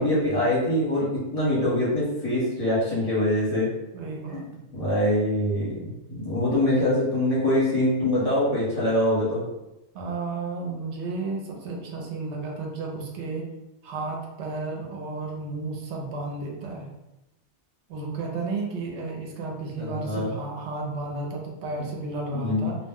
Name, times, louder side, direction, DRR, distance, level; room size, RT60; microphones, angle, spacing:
voice 1, 0.0-3.7 4.3-4.4 4.7-9.4 19.8-20.3 22.3-22.7, left 1 dB, 35° left, -8 dB, 1.0 m, -24 dB
voice 2, 3.9-4.4 9.9-13.4 13.8-16.9 17.9-22.8, right 3 dB, 80° right, -1 dB, 0.9 m, -32 dB
2.3 x 2.1 x 3.5 m, 0.93 s
omnidirectional pair, 1.2 m